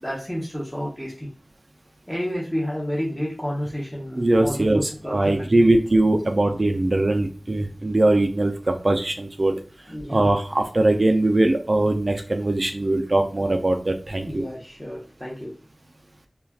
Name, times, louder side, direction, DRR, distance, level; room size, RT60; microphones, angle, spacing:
voice 1, 0.0-1.3 2.1-5.7 9.9-10.3 14.2-15.5, equal, 10° left, -4 dB, 0.7 m, -30 dB
voice 2, 4.2-9.6 10.1-14.4, right 2 dB, 45° right, 4 dB, 0.3 m, -21 dB
2.3 x 2.2 x 3.3 m, 0.40 s
wide cardioid pair, 60°, 0 cm